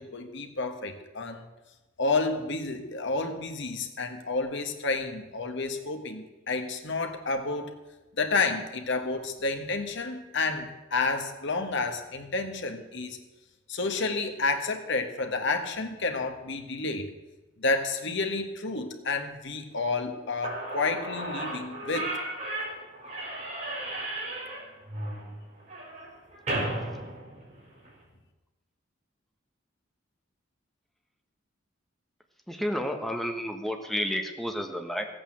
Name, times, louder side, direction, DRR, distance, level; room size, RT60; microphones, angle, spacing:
voice 1, 0.0-1.4 2.0-7.7 8.2-13.2 13.7-17.1 17.6-22.1, left 3 dB, 65° left, 6 dB, 1.6 m, -30 dB
Slam / Squeak, 20.1-20.2 20.4-27.9, right 1 dB, 40° right, 5.0 m, -35 dB
voice 2, 32.5-35.1, equal, ahead, 4 dB, 1.3 m, -31 dB
15.0 x 8.6 x 7.5 m, 1.1 s
head